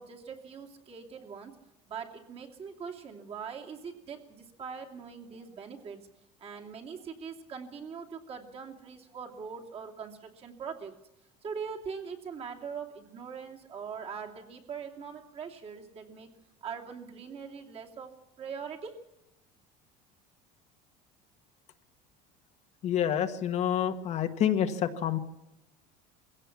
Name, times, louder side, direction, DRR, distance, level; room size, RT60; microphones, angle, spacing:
voice 1, 0.0-1.5 1.9-6.0 6.4-10.9 11.4-16.3 16.6-19.0, right 6 dB, 35° right, 1 dB, 2.8 m, -42 dB
voice 2, 22.8-25.2, left 9 dB, 45° left, 7 dB, 1.4 m, -28 dB
21.5 x 16.5 x 7.3 m, 0.90 s
cardioid pair, 135°, 16 cm